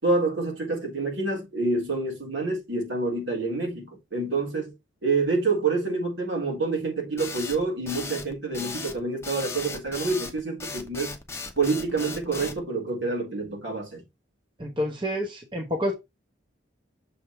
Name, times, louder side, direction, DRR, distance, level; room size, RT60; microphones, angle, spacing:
voice 1, 0.0-4.7 5.0-11.1 11.6-14.0, right 3 dB, 70° right, 3.6 m, -27 dB
sound 1, 7.2-12.6, left 4 dB, 15° left, 0.8 m, -36 dB
voice 2, 14.6-15.9, equal, 25° right, 1.0 m, -28 dB
6.9 x 3.7 x 4.5 m
head